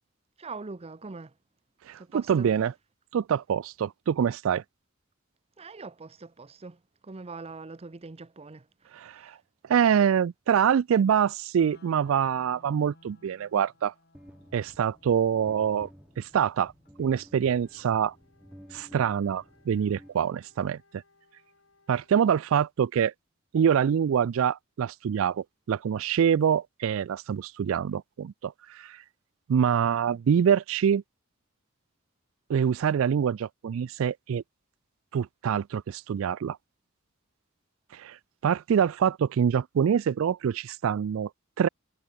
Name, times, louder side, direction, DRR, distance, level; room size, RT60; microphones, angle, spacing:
voice 1, 0.4-1.3 2.0-2.5 5.6-9.4, right 3 dB, 30° right, 0.6 m, -43 dB
voice 2, 1.9-2.7 3.1-4.6 8.9-9.3 9.7-13.9 14.5-15.9 16.2-16.7 17.0-18.1 18.7-20.8 21.9-23.1 23.5-29.0 29.5-31.0 32.5-34.4 35.1-36.6 37.9-38.2 38.4-41.3 41.6-41.7, right 8 dB, 70° right, 0.3 m, -25 dB
sound 1, 11.6-21.6, left 2 dB, 50° left, 6.7 m, -61 dB
sound 2, 14.1-20.7, equal, 5° right, 2.3 m, -53 dB
Wind instrument woodwind instrument, 17.4-22.6, left 3 dB, 70° left, 8.0 m, -65 dB
head